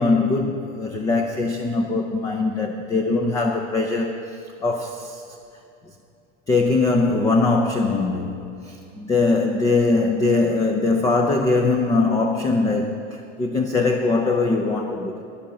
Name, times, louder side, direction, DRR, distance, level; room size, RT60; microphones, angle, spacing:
voice 1, 0.0-5.2 6.5-15.2, left 3 dB, 10° left, 3 dB, 0.4 m, -21 dB
10.5 x 10.0 x 7.4 m, 2.5 s
supercardioid pair, 135°, 38 cm